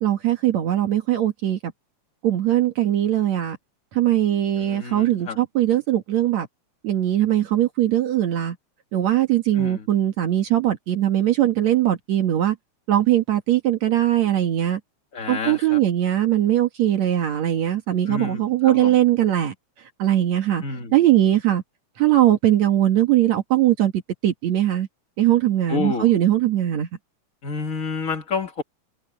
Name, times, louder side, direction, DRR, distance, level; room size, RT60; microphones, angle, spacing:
voice 1, 0.0-1.6 2.2-3.6 3.9-6.5 6.8-8.6 8.9-12.6 12.9-14.8 15.3-19.5 20.0-20.6 20.9-21.6 22.0-23.9 24.2-24.9 25.2-26.9, right 12 dB, 70° right, 2.8 m, -20 dB
voice 2, 4.6-5.4 9.5-9.9 15.1-15.8 18.0-19.0 20.6-21.0 25.7-26.1 27.4-28.6, left 4 dB, 35° left, 1.6 m, -29 dB
omnidirectional pair, 3.4 m